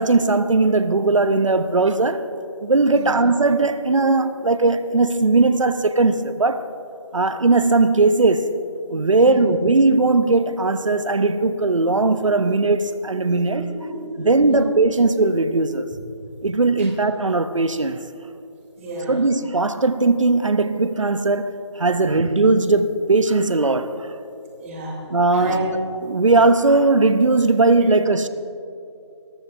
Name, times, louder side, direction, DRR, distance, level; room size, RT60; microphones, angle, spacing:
voice 1, 0.0-2.3 2.6-6.7 7.1-8.6 8.9-13.7 14.2-15.9 16.4-18.0 19.1-24.1 25.1-25.6 26.0-28.3, right 3 dB, 85° right, 0.8 m, -18 dB
voice 2, 8.9-9.6 13.3-14.6 16.8-16.9 18.8-19.1 24.6-24.9 25.3-25.6, right 1 dB, 25° right, 3.2 m, -32 dB
22.5 x 14.0 x 2.7 m
figure-of-eight pair, 160°, 16 cm